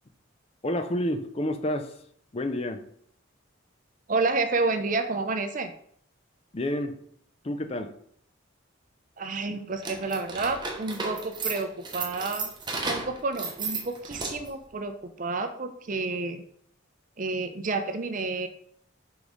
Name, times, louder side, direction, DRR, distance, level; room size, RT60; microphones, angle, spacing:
voice 1, 0.6-2.0 2.3-2.9 6.5-7.0 7.4-7.9 9.5-9.6, left 1 dB, 30° left, 8 dB, 0.5 m, -29 dB
voice 2, 4.1-5.7 9.2-12.5 12.9-16.4 17.2-18.5, right 3 dB, 40° right, 8 dB, 0.5 m, -30 dB
sound 1, 9.8-14.6, right 3 dB, 20° right, 0.9 m, -34 dB
5.2 x 4.7 x 3.9 m, 0.65 s
head